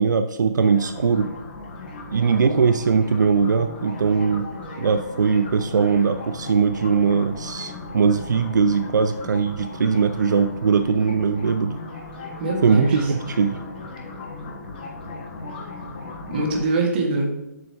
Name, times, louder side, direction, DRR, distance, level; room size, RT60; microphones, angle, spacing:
voice 1, 0.0-1.3 2.1-4.5 4.8-11.8 12.6-13.6, right 5 dB, 85° right, 9 dB, 0.5 m, -20 dB
sound 1, 0.6-16.6, left 3 dB, 30° left, 1.3 m, -37 dB
voice 2, 12.4-13.3 16.3-17.4, right 2 dB, 35° right, 0 dB, 1.6 m, -24 dB
7.7 x 6.4 x 3.4 m, 0.91 s
hypercardioid pair, 175°, 10 cm